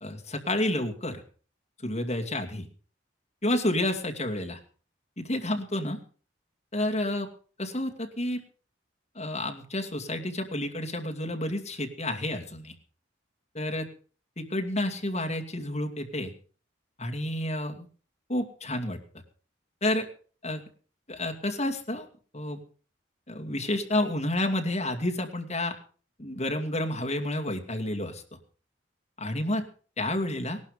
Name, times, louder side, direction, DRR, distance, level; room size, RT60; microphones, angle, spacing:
voice 1, 0.0-1.2 1.8-2.7 3.4-4.6 5.2-6.0 6.7-7.3 7.6-8.4 9.2-12.7 13.5-13.9 14.4-16.3 17.0-17.9 18.3-19.0 19.8-20.1 20.4-20.6 21.1-22.1 22.3-22.6 23.3-25.7 26.2-28.2 29.2-29.7 30.0-30.6, left 1 dB, 35° left, 3 dB, 2.4 m, -30 dB
18.0 x 12.0 x 5.2 m, 0.41 s
head